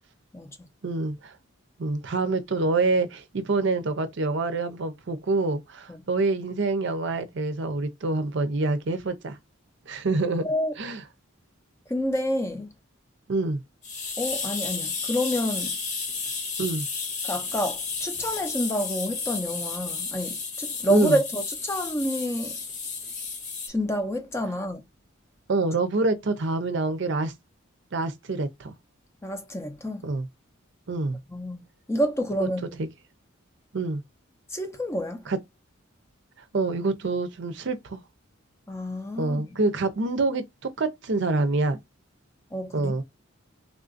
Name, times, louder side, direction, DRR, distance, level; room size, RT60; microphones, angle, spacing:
voice 1, 0.8-1.3 1.8-9.4 9.9-10.5 10.8-11.0 13.3-13.6 16.6-16.9 20.9-21.2 25.5-27.3 27.9-28.7 30.0-30.3 30.9-31.2 32.8-32.9 33.7-34.0 35.3-35.4 36.5-38.0 39.2-41.8 42.7-43.0, right 3 dB, 55° right, 0.5 m, -26 dB
voice 2, 10.4-10.7 11.9-12.7 14.2-15.8 17.2-22.6 23.7-24.8 29.2-30.0 31.3-32.8 34.5-35.3 38.7-39.6 42.5-43.0, equal, 15° left, 0.5 m, -29 dB
sound 1, 13.8-23.7, left 4 dB, 35° left, 0.8 m, -32 dB
3.6 x 2.5 x 2.5 m
head